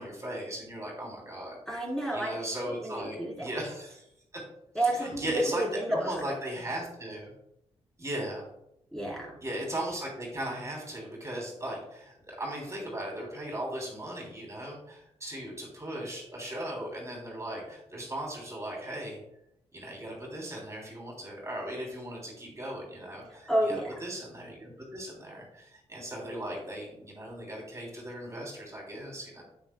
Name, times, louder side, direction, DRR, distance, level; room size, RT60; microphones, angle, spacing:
voice 1, 0.0-1.6 2.1-4.0 4.3-4.4 5.0-7.3 8.0-8.5 9.4-19.2 19.7-23.7 24.0-29.4, right 1 dB, 25° right, -2 dB, 3.1 m, -37 dB
voice 2, 1.7-3.5 4.7-6.2 8.9-9.3 23.2-24.0, right 1 dB, 5° left, -4 dB, 3.2 m, -31 dB
9.4 x 8.8 x 2.3 m, 0.80 s
cardioid pair, 95°, 12 cm